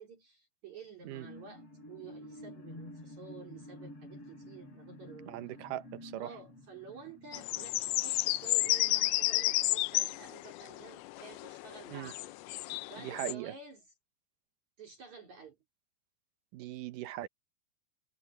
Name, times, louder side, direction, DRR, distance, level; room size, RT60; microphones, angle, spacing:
voice 1, 0.0-5.4 6.2-12.4 12.9-13.9 14.8-15.6, right 5 dB, 50° right, 4.8 m, -51 dB
sound 1, 1.0-8.8 9.2-9.3, left 1 dB, 40° left, 8.8 m, -50 dB
voice 2, 5.3-6.3 11.9-12.1 13.0-13.5 16.5-17.3, right 14 dB, 70° right, 2.3 m, -39 dB
sound 2, 7.3-13.3, left 18 dB, 90° left, 2.6 m, -32 dB
omnidirectional pair, 4.3 m